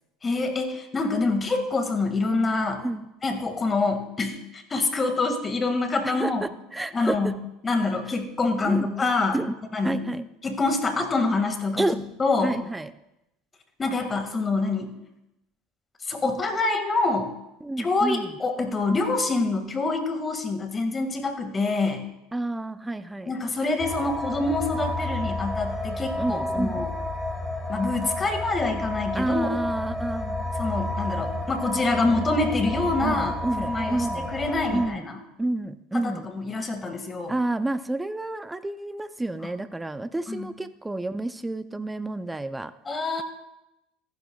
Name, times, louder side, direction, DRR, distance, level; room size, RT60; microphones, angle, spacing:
voice 1, 0.2-2.8 3.2-6.4 6.9-7.4 7.6-9.4 9.7-10.0 10.4-11.9 12.2-12.6 13.8-14.9 16.1-17.3 17.8-22.0 23.2-26.9 27.7-29.6 30.6-35.2 35.9-37.3 40.3-40.5 42.9-43.2, left 3 dB, 25° left, 6 dB, 1.9 m, -26 dB
voice 2, 6.0-7.3 8.6-8.9 9.3-9.5 9.8-10.3 11.8-12.0 12.4-12.9 17.6-18.3 22.3-23.3 26.1-26.9 29.1-30.5 33.0-34.3 34.7-35.1 35.4-36.3 37.3-42.7, right 2 dB, 10° right, 12 dB, 0.5 m, -29 dB
sound 1, 23.8-34.9, left 1 dB, 10° left, 2.3 m, -30 dB
14.5 x 11.5 x 2.3 m, 0.88 s
hypercardioid pair, 85°, 0 cm